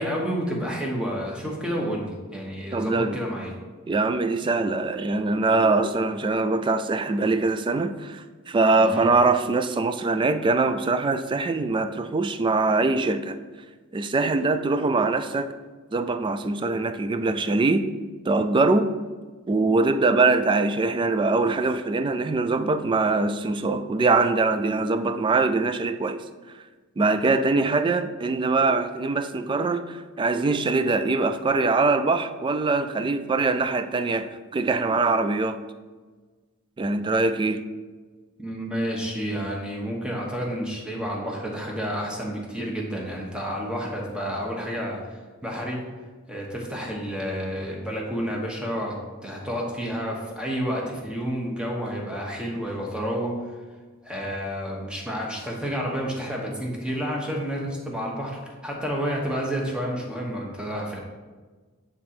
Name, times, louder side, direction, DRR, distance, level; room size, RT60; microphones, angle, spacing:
voice 1, 0.0-3.5 8.8-9.1 38.4-45.8 46.3-48.9 49.2-53.5 54.0-61.0, equal, 5° right, -2 dB, 1.1 m, -30 dB
voice 2, 2.7-3.2 3.9-13.4 13.9-15.5 15.9-17.9 18.3-19.0 19.5-26.2 27.0-35.6 36.8-37.6, right 3 dB, 20° right, 10 dB, 0.3 m, -23 dB
8.6 x 3.7 x 4.3 m, 1.4 s
head